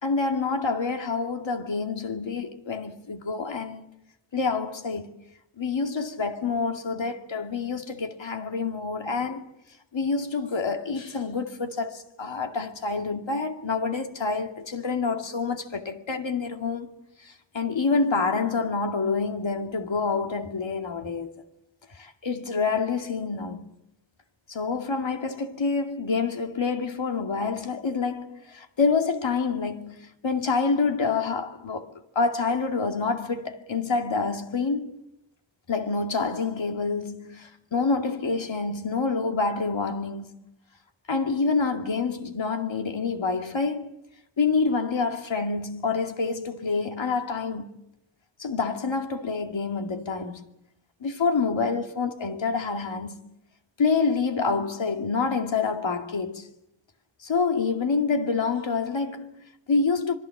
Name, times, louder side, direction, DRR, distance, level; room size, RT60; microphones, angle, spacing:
voice 1, 0.0-3.8 4.3-5.1 5.6-9.5 9.9-16.9 17.2-21.3 22.0-23.7 24.5-31.9 32.2-35.0 35.7-40.3 41.1-43.9 44.4-47.6 48.4-50.4 51.0-53.3 53.8-56.5 57.2-60.1, left 4 dB, 65° left, 2.4 m, -27 dB
26.0 x 22.5 x 7.2 m
wide cardioid pair, 90°, 48 cm